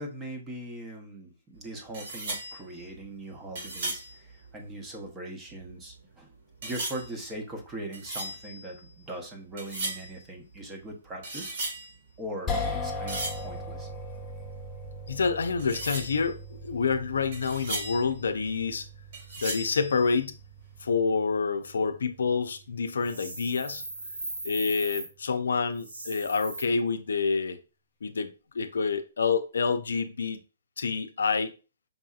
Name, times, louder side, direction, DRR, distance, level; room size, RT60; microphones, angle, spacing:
voice 1, 0.0-6.3 6.6-11.7 12.2-12.5 12.8-13.9, right 1 dB, 15° right, 0.9 m, -40 dB
sound 1, 1.6-1.7 1.9-5.1 5.5-6.1 6.6-9.2 9.5-10.2 10.6-12.3 12.6-14.6 14.8-14.9 15.2-15.3 15.6-18.9 19.1-20.6, right 1 dB, 55° right, 2.0 m, -37 dB
sound 2, 12.5-24.8, left 2 dB, 10° left, 1.1 m, -40 dB
voice 2, 15.1-18.9 19.4-20.4 20.8-23.8 24.4-27.6 28.0-30.4 30.8-31.5, left 5 dB, 80° left, 0.5 m, -28 dB
sound 3, 23.0-25.1 25.7-26.6, right 2 dB, 90° right, 1.8 m, -38 dB
5.3 x 2.7 x 2.4 m
hypercardioid pair, 150°, 0 cm